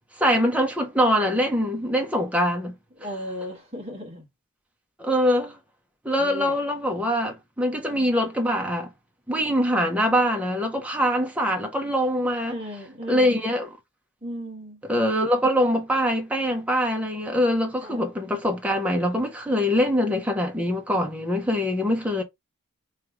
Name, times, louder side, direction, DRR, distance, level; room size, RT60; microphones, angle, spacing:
voice 1, 0.2-2.7 5.0-5.6 6.0-8.9 9.3-12.6 13.1-13.8 14.8-22.2, equal, 5° right, 0.8 m, -23 dB
voice 2, 3.0-4.2 6.2-6.5 7.9-8.1 12.5-13.4 14.2-14.8 17.8-18.1, equal, 30° right, 1.5 m, -36 dB
3.2 x 2.9 x 3.5 m
head